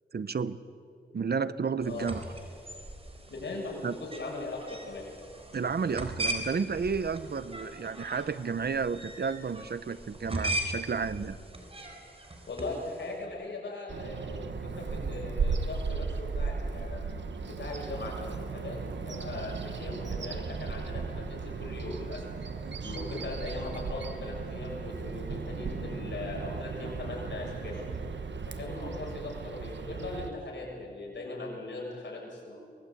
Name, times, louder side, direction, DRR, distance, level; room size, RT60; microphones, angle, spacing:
voice 1, 0.1-0.6 1.1-2.2 3.8-3.9 5.5-11.4, right 5 dB, 60° right, 15 dB, 0.9 m, -31 dB
sound 1, 1.8-13.1, right 1 dB, 30° right, 4.4 m, -39 dB
voice 2, 3.3-5.0 12.5-17.0 17.4-22.3 22.8-27.8 28.5-32.6, left 2 dB, 90° left, -2 dB, 6.9 m, -39 dB
Bird vocalization bird call bird song, 13.9-30.3, right 4 dB, 90° right, 1.4 m, -36 dB
24.0 x 19.5 x 8.6 m, 2.4 s
wide cardioid pair, 80°, 18 cm